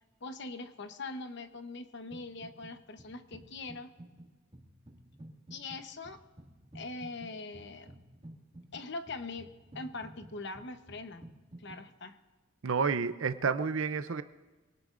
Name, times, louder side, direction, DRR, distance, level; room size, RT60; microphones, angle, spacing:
voice 1, 0.2-3.9 5.5-6.2 6.7-7.9 8.7-11.3 11.6-12.2, left 3 dB, 55° left, 8 dB, 0.9 m, -42 dB
sound 1, 2.1-2.7 3.0-11.8, right 1 dB, 30° right, 2.0 m, -52 dB
voice 2, 12.6-14.2, right 5 dB, 70° right, 11 dB, 0.6 m, -30 dB
25.5 x 18.0 x 2.5 m, 1.3 s
head